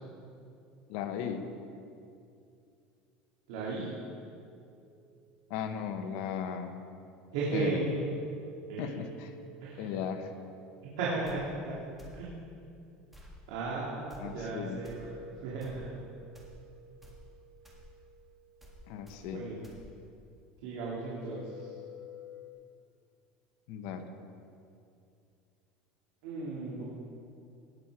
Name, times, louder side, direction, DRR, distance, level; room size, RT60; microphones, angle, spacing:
voice 1, 0.9-1.5 5.5-6.7 7.5-7.8 8.8-9.3 9.8-10.3 14.2-14.8 18.9-19.4 23.7-24.1, left 8 dB, 65° left, 6 dB, 1.1 m, -36 dB
voice 2, 3.5-3.9 7.3-7.9 8.7-9.0 9.6-9.9 10.8-11.8 12.1-12.3 13.5-15.1 15.4-16.0 19.3-19.7 20.6-21.7 26.2-26.8, right 3 dB, 85° right, -6 dB, 2.5 m, -35 dB
sound 1, 4.5-6.1 7.5-12.9 14.4-19.8 21.2-22.5, equal, 40° left, 1.7 m, -52 dB
sound 2, 11.2-11.4 12.0-12.2 13.1-13.3 14.1-14.2 14.8-15.0 15.6-15.8 16.3-16.6 17.0-17.2 17.6-17.8 18.6-18.8 19.1-19.2 19.6-19.8, right 2 dB, 5° right, 1.7 m, -52 dB
18.0 x 7.4 x 4.8 m, 2.5 s
cardioid pair, 160°, 3 cm